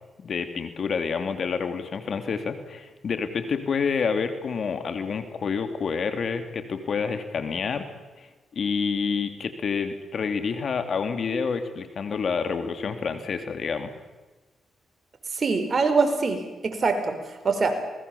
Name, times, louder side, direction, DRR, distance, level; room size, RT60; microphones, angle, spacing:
voice 1, 0.2-7.9 8.2-13.9, left 5 dB, 60° left, 8 dB, 2.7 m, -28 dB
voice 2, 15.3-17.2 17.4-17.8, right 4 dB, 45° right, 7 dB, 4.8 m, -23 dB
27.5 x 20.5 x 7.0 m, 1.2 s
supercardioid pair, 60°, 0 cm